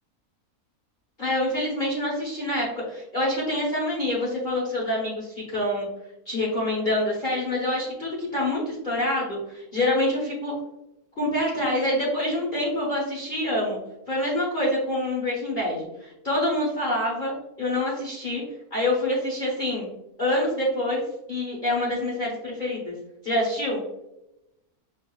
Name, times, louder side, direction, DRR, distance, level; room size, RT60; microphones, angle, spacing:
voice 1, 1.2-5.9 6.3-10.5 11.2-13.8 14.1-18.4 18.7-19.9 20.2-21.0 21.3-22.9 23.2-23.8, left 1 dB, 40° left, -6 dB, 1.0 m, -26 dB
5.3 x 2.6 x 2.3 m, 0.89 s
omnidirectional pair, 1.6 m